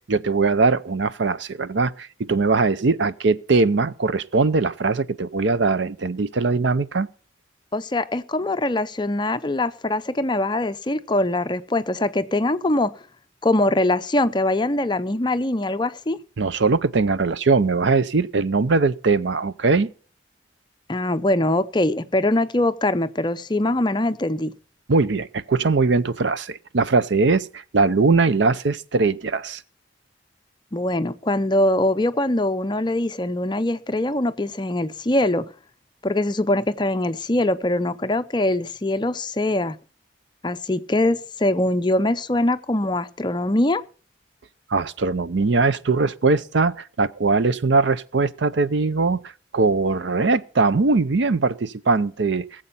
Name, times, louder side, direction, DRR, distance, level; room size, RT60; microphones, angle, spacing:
voice 1, 0.1-7.1 16.4-19.9 24.9-29.6 44.7-49.2 49.5-52.4, right 4 dB, 70° right, 0.6 m, -21 dB
voice 2, 7.7-12.9 13.4-16.2 20.9-24.5 30.7-35.5 36.0-39.8 40.4-43.8, left 1 dB, 25° left, 0.5 m, -22 dB
19.0 x 7.7 x 5.5 m
head